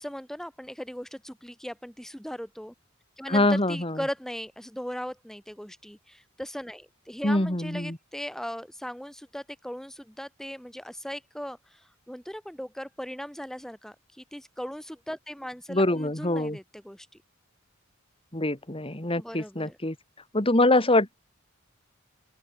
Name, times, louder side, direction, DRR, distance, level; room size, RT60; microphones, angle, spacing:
voice 1, 0.0-2.7 3.2-17.1 19.1-19.8, equal, ahead, 1.7 m, -38 dB
voice 2, 3.3-4.0 7.2-8.0 15.7-16.6 18.3-20.0 20.3-21.1, left 1 dB, 25° left, 2.8 m, -24 dB
open air
head